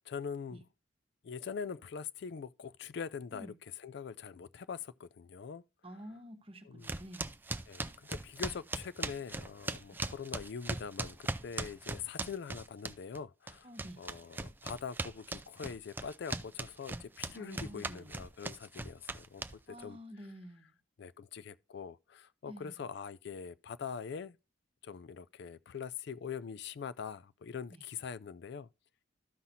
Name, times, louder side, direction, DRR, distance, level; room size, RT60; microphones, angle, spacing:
voice 1, 0.1-0.6 1.2-5.6 6.6-6.9 7.7-11.2 11.4-13.7 14.0-19.4 19.7-20.0 21.0-24.4 24.8-28.7, left 6 dB, 60° left, 0.4 m, -43 dB
voice 2, 5.8-7.3 9.9-10.0 13.6-14.0 17.3-18.2 19.7-20.7 22.4-22.8 27.7-27.8, equal, 30° right, 1.1 m, -49 dB
sound 1, 6.8-13.2 13.5-19.8, right 2 dB, 10° right, 0.3 m, -39 dB
13.5 x 5.7 x 2.7 m
head